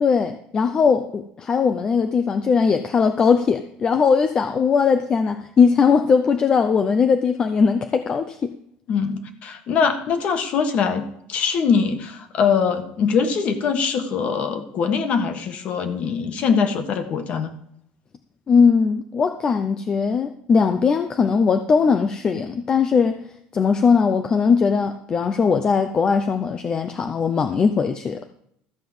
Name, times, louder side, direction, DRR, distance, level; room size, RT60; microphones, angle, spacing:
voice 1, 0.0-8.5 18.5-23.2 23.5-28.3, left 5 dB, 25° left, 8 dB, 0.5 m, -19 dB
voice 2, 8.9-17.5, left 6 dB, 40° left, 8 dB, 1.4 m, -22 dB
14.0 x 5.3 x 7.8 m, 0.73 s
cardioid pair, 170°, 3 cm